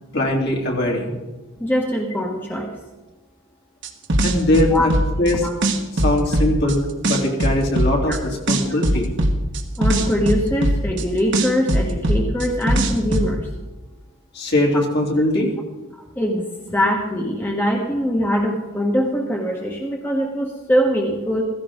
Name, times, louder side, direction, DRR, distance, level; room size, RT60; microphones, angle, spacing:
voice 1, 0.1-1.2 4.2-4.9 5.2-5.5 5.9-9.1 14.3-15.5, left 1 dB, 50° left, -1 dB, 3.0 m, -21 dB
voice 2, 1.6-2.7 4.7-4.9 5.4-5.5 8.1-8.2 9.8-13.4 14.7-14.8 16.1-21.4, equal, 10° left, -1 dB, 1.5 m, -22 dB
sound 1, 3.8-5.3 5.6-6.7 7.0-8.2 8.5-11.0 11.3-13.3, right 1 dB, 55° right, 1.6 m, -19 dB
16.0 x 15.5 x 3.7 m, 1.1 s
head